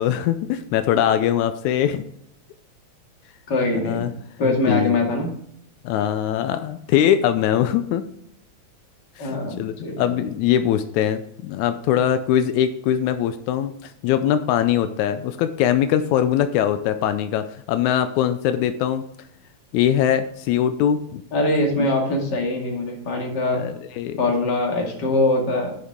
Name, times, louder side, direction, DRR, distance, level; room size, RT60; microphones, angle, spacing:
voice 1, 0.0-2.1 3.8-4.1 4.5-5.0 5.8-8.0 9.2-19.0 19.7-21.2 23.5-24.2, left 10 dB, 85° left, 10 dB, 2.0 m, -22 dB
voice 2, 3.5-4.1 4.4-5.3 9.2-10.2 21.3-23.6 24.2-25.8, left 2 dB, 40° left, 0 dB, 2.5 m, -22 dB
10.5 x 6.6 x 3.6 m, 0.71 s
omnidirectional pair, 3.3 m